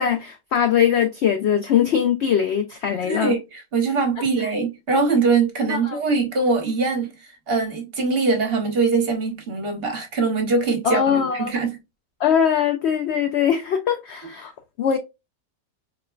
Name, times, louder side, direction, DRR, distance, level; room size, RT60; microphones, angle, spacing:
voice 1, 0.0-3.3 5.7-6.0 10.8-11.5 12.2-14.5 14.8-15.0, left 8 dB, 85° left, 0.5 m, -21 dB
voice 2, 3.0-11.8, right 4 dB, 45° right, 1.2 m, -22 dB
4.3 x 2.2 x 2.3 m
omnidirectional pair, 1.7 m